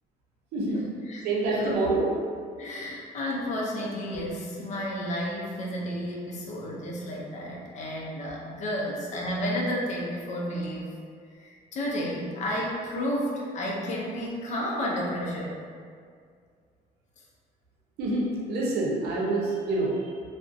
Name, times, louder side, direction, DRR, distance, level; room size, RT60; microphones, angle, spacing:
voice 1, 0.7-1.2 1.5-1.8 2.6-10.9 11.3-15.6, equal, 45° left, -3 dB, 0.5 m, -32 dB
voice 2, 1.2-2.1 18.0-20.1, right 2 dB, 75° right, -4 dB, 0.6 m, -26 dB
2.3 x 2.1 x 2.5 m, 2.1 s
cardioid pair, 110°, 17 cm